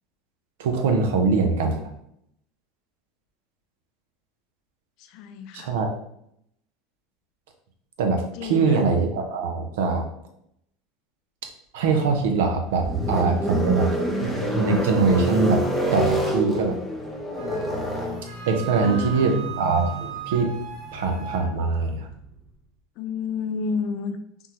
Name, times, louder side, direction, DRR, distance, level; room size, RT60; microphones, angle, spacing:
voice 1, 0.6-1.9 5.5-5.9 8.0-10.1 11.7-13.9 14.2-15.7 15.9-16.8 18.5-20.5 20.9-22.1, right 4 dB, 90° right, 4 dB, 0.5 m, -23 dB
voice 2, 5.1-5.7 8.4-8.8 18.8-19.4 23.0-24.2, left 5 dB, 60° left, 8 dB, 0.4 m, -30 dB
sound 1, 12.1-22.3, right 1 dB, ahead, 0.7 m, -28 dB
Wind instrument woodwind instrument, 17.4-21.4, right 9 dB, 60° right, 0.8 m, -38 dB
3.5 x 2.0 x 2.9 m, 0.72 s
supercardioid pair, 135°, 0 cm